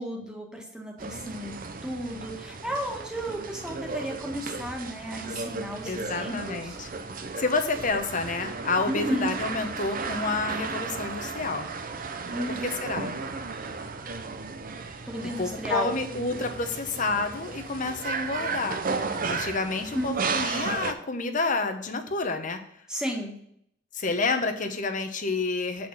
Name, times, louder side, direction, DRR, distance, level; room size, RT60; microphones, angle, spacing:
voice 1, 0.0-1.6 1.8-6.8 8.9-9.3 12.3-12.6 15.1-15.9 19.9-20.1 22.9-23.4, equal, 5° right, -1 dB, 1.7 m, -33 dB
sound 1, 1.0-20.9, right 4 dB, 50° right, 0.6 m, -34 dB
voice 2, 5.8-11.7 12.5-13.1 15.4-18.8 19.3-22.6 23.9-25.9, left 3 dB, 45° left, 7 dB, 0.9 m, -29 dB
8.2 x 4.3 x 5.6 m, 0.69 s
head